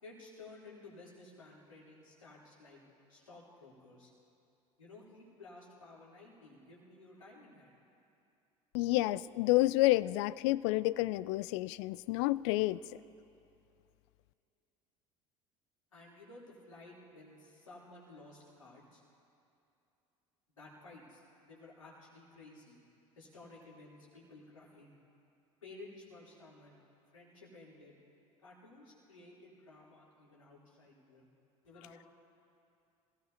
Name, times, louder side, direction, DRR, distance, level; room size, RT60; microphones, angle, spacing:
voice 1, 0.0-2.8 3.1-4.1 4.8-7.7 15.9-19.0 20.5-22.8 23.2-25.0 25.6-26.8 27.1-28.0 28.4-31.3 31.6-32.0, left 2 dB, 85° left, -7 dB, 3.6 m, -54 dB
voice 2, 8.7-12.8, left 18 dB, 60° left, 19 dB, 0.4 m, -29 dB
26.0 x 17.5 x 2.9 m, 2.6 s
figure-of-eight pair, 65°, 16 cm